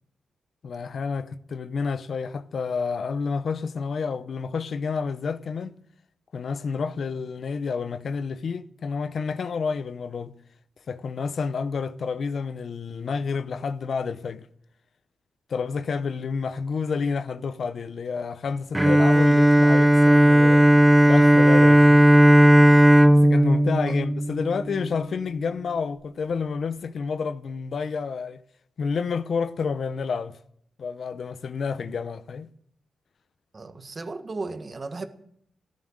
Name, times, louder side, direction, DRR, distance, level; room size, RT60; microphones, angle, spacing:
voice 1, 0.6-5.8 6.3-10.3 10.9-14.5 15.5-20.7 21.1-22.0 23.1-28.4 28.8-30.4 30.8-32.5, left 5 dB, 60° left, 0.7 m, -29 dB
Bowed string instrument, 18.8-24.9, equal, 10° right, 0.8 m, -16 dB
voice 2, 33.5-35.1, right 3 dB, 35° right, 1.5 m, -35 dB
14.5 x 13.0 x 6.5 m
wide cardioid pair, 115°, 0 cm